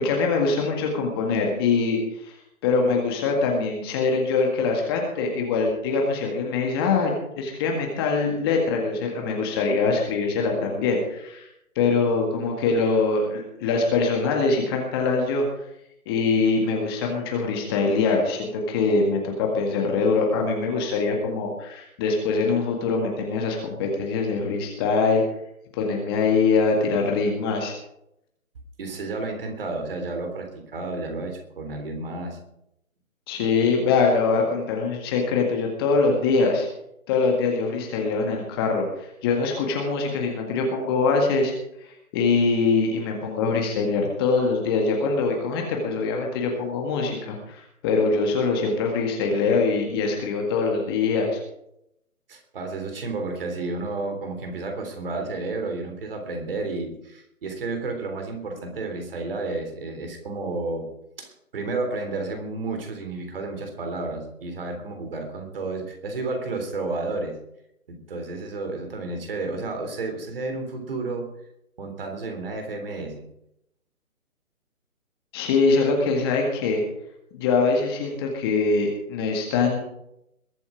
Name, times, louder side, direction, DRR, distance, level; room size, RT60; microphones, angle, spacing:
voice 1, 0.0-2.4 2.6-11.5 11.8-15.5 16.1-25.2 25.7-27.7 33.3-36.7 37.1-41.5 41.8-51.4 75.3-76.8 77.3-79.8, left 4 dB, 15° left, 1 dB, 1.8 m, -23 dB
voice 2, 28.8-32.4 52.3-60.9 61.2-67.4 67.9-71.3 71.8-73.3, right 3 dB, 40° right, 4 dB, 3.5 m, -31 dB
21.5 x 8.2 x 5.1 m, 0.78 s
figure-of-eight pair, 150°, 42 cm